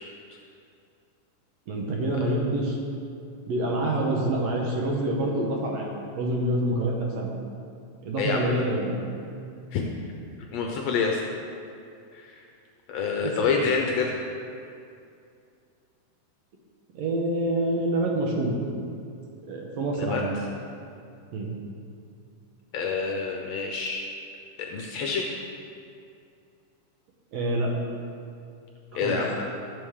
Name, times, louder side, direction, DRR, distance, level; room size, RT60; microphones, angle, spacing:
voice 1, 1.7-2.8 3.5-5.9 6.1-7.3 8.0-9.0 13.2-13.5 16.9-18.6 19.5-20.3 21.3-21.5 27.3-27.7 29.0-29.2, right 1 dB, 65° right, -1 dB, 2.1 m, -26 dB
voice 2, 8.2-8.6 9.7-9.8 10.5-11.2 12.1-12.4 12.9-14.2 20.0-20.2 22.7-24.0 24.7-25.3 28.9-29.5, left 5 dB, 75° left, 1 dB, 1.7 m, -27 dB
14.5 x 6.9 x 3.6 m, 2.5 s
omnidirectional pair, 3.6 m